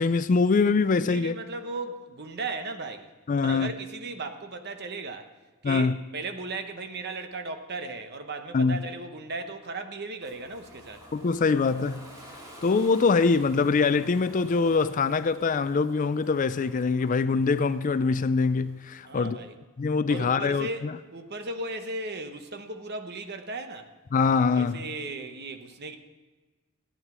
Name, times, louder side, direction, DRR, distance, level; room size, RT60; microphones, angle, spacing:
voice 1, 0.0-1.4 3.3-3.7 5.6-6.0 8.5-8.8 11.1-12.1 12.6-19.4 19.8-20.9 24.1-24.8, left 4 dB, 35° left, 0.4 m, -23 dB
voice 2, 1.1-3.1 3.4-5.3 5.6-11.1 19.0-19.5 20.1-20.9 21.1-23.9 24.5-26.0, right 3 dB, 50° right, 1.1 m, -36 dB
Ocean, 10.2-19.0, equal, 15° right, 2.2 m, -50 dB
14.0 x 9.9 x 6.1 m
head